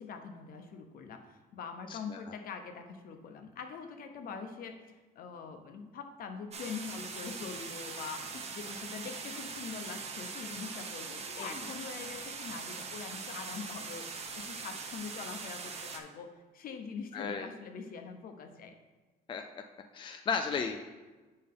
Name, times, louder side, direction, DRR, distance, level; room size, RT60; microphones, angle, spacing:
voice 1, 0.0-18.7, left 6 dB, 60° left, 6 dB, 0.9 m, -44 dB
voice 2, 1.9-2.4 11.4-11.5 17.1-17.5 19.3-19.4 19.9-20.8, left 5 dB, 30° left, 5 dB, 0.5 m, -34 dB
sound 1, 6.5-16.0, right 5 dB, 40° right, 0.9 m, -42 dB
7.6 x 5.4 x 3.7 m, 1.3 s
cardioid pair, 110°, 17 cm